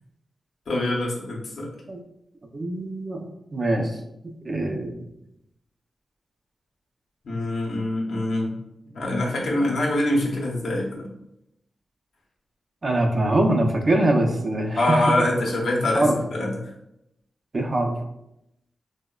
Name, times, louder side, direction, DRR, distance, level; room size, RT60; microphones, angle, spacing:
voice 1, 0.7-1.7 7.2-8.6 8.9-11.1 14.8-16.7, left 1 dB, 80° left, -3 dB, 0.6 m, -24 dB
voice 2, 2.5-3.3 3.5-4.0 4.2-5.0 12.8-15.0 15.9-16.1 17.5-17.9, right 1 dB, 50° right, 2 dB, 0.4 m, -23 dB
2.9 x 2.0 x 2.2 m, 0.84 s
cardioid pair, 60°, 0 cm